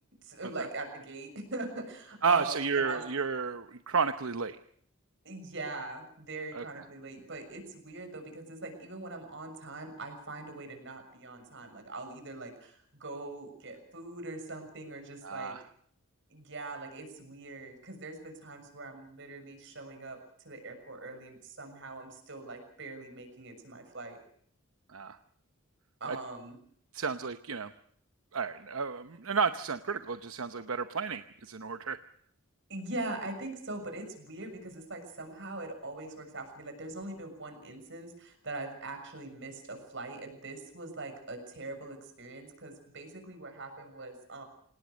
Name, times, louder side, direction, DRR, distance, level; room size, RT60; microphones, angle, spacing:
voice 1, 0.2-3.0 5.2-15.6 16.3-20.2 20.4-24.2 26.0-26.6 32.7-44.4, right 2 dB, 60° right, 6 dB, 6.7 m, -42 dB
voice 2, 2.2-4.6 6.5-6.8 15.2-15.6 24.9-25.2 26.1-26.2 26.9-27.7 28.3-32.0, right 5 dB, 75° right, 10 dB, 0.9 m, -32 dB
27.0 x 19.0 x 6.5 m, 0.64 s
head